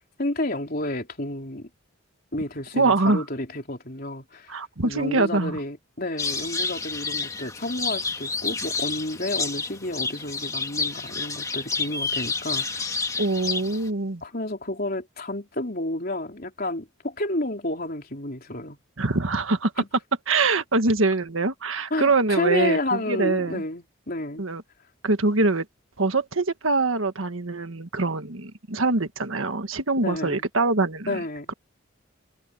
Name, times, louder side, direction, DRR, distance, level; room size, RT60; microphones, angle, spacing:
voice 1, 0.2-1.7 2.3-13.0 14.2-18.8 19.8-19.9 21.9-24.4 30.0-30.4 31.1-31.5, left 1 dB, 45° left, 4.0 m, -30 dB
voice 2, 2.7-3.2 4.5-5.6 13.2-14.2 19.0-19.7 20.3-23.6 24.4-24.6 25.0-25.6 26.0-31.1, right 3 dB, 80° right, 1.6 m, -24 dB
sound 1, 6.2-13.9, left 4 dB, 15° left, 1.9 m, -29 dB
head